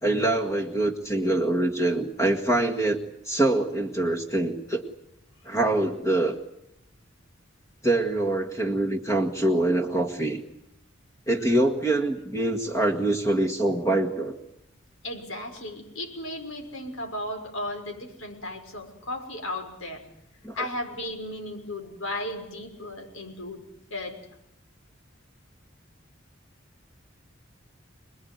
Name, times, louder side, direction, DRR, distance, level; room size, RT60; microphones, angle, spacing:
voice 1, 0.0-4.8 5.5-6.4 7.8-10.4 11.3-14.4 20.4-20.7, right 1 dB, 15° left, 4 dB, 1.8 m, -24 dB
voice 2, 15.0-20.0 20.5-23.6 23.9-24.2, left 1 dB, 90° left, 4 dB, 6.0 m, -35 dB
26.5 x 20.5 x 9.5 m, 0.81 s
head